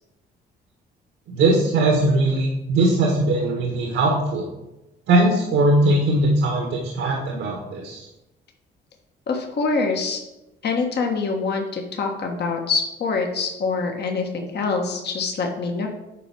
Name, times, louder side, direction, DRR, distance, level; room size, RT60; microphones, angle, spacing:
voice 1, 1.3-4.5 5.1-8.1, right 2 dB, 85° right, -1 dB, 1.7 m, -20 dB
voice 2, 9.3-10.2 10.6-15.9, left 4 dB, 55° left, 2 dB, 1.5 m, -25 dB
9.1 x 4.6 x 6.1 m, 0.97 s
cardioid pair, 90°, 20 cm